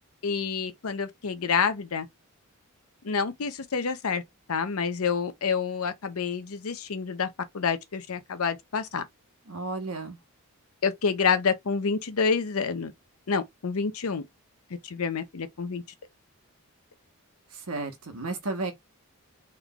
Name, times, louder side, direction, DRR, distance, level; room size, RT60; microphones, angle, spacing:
voice 1, 0.2-2.1 3.0-4.2 4.5-7.3 7.5-9.0 10.8-12.9 13.3-14.2 14.8-15.8, left 5 dB, 70° left, 0.7 m, -28 dB
voice 2, 9.5-10.2 17.7-18.7, right 3 dB, 80° right, 1.1 m, -33 dB
3.7 x 3.2 x 2.3 m
head